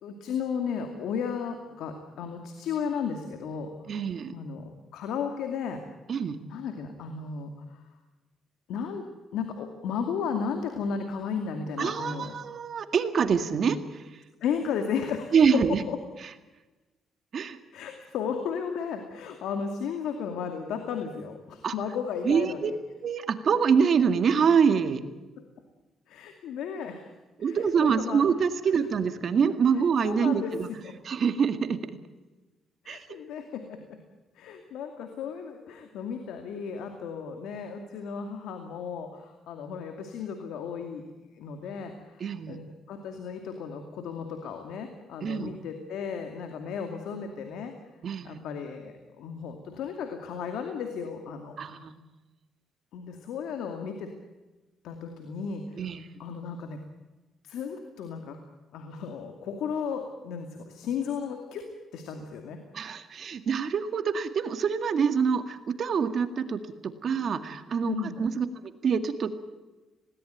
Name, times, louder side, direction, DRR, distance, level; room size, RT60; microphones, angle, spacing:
voice 1, 0.0-3.7 4.3-5.8 6.5-7.8 8.7-9.1 9.3-12.3 14.4-16.0 17.7-22.8 26.1-27.1 27.4-28.2 28.7-28.8 29.7-30.9 32.8-34.0 34.4-41.0 41.3-47.7 48.2-51.6 52.9-54.1 54.8-56.8 57.4-58.4 58.7-62.6 67.8-68.2, left 6 dB, 85° left, 5 dB, 2.4 m, -34 dB
voice 2, 3.9-4.3 6.1-6.4 11.8-13.8 15.3-15.8 17.3-17.6 21.6-21.7 22.2-22.7 23.0-25.0 27.4-30.7 31.1-31.8 32.9-33.0 42.2-42.6 45.2-45.5 48.0-48.4 51.6-51.9 55.8-56.1 62.7-69.5, right 6 dB, 55° right, 9 dB, 1.9 m, -25 dB
20.0 x 18.0 x 9.2 m, 1.1 s
cardioid pair, 90°, 0 cm